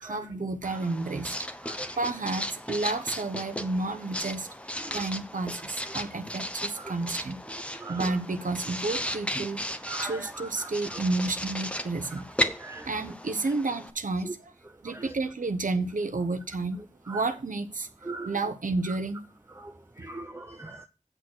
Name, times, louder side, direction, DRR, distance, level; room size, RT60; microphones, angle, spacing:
voice 1, 0.0-1.4 2.0-4.5 4.9-7.4 7.9-9.6 10.0-12.2 12.8-14.5 14.8-17.9 18.2-19.2, right 3 dB, 85° right, 0.9 m, -31 dB
Writing, 0.6-13.9, equal, 10° left, 1.0 m, -35 dB
voice 2, 7.7-8.0 9.9-10.2 10.6-11.0 12.6-12.9 14.2-14.3 14.9-15.1 17.1-17.2 18.0-18.3 19.6-20.9, right 2 dB, 20° right, 0.7 m, -40 dB
7.9 x 6.4 x 6.1 m
wide cardioid pair, 50°, 13 cm